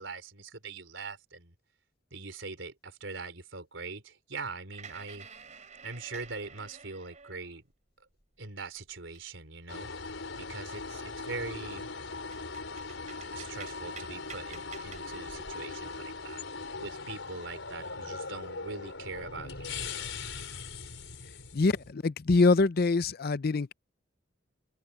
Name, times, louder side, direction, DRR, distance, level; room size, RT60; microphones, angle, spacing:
voice 1, 0.0-1.5 2.1-5.3 5.8-7.6 8.4-11.9 13.3-16.4 16.8-20.2, right 4 dB, 75° right, 4.1 m, -42 dB
sound 1, 4.7-7.7 8.2-9.7 10.1-10.2 10.6-11.1 11.7-11.8 12.1-15.6, right 6 dB, 40° right, 3.7 m, -50 dB
sound 2, 9.7-21.9, left 4 dB, 85° left, 5.1 m, -40 dB
voice 2, 21.5-23.7, left 3 dB, 50° left, 0.6 m, -24 dB
open air
head